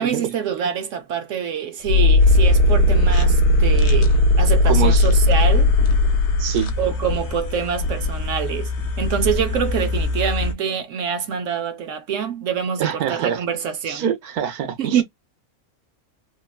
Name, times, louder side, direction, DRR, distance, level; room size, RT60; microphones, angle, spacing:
voice 1, 0.0-5.7 6.8-8.7 9.0-14.0 14.8-15.0, right 8 dB, 65° right, 0.8 m, -25 dB
sound 1, 1.9-6.7, left 2 dB, 85° left, 1.2 m, -16 dB
sound 2, 2.2-10.5, left 1 dB, 60° left, 0.8 m, -25 dB
voice 2, 4.6-5.0 6.4-6.7 12.8-13.4 13.9-15.0, right 8 dB, 80° right, 1.3 m, -25 dB
3.5 x 2.2 x 2.2 m
omnidirectional pair, 1.5 m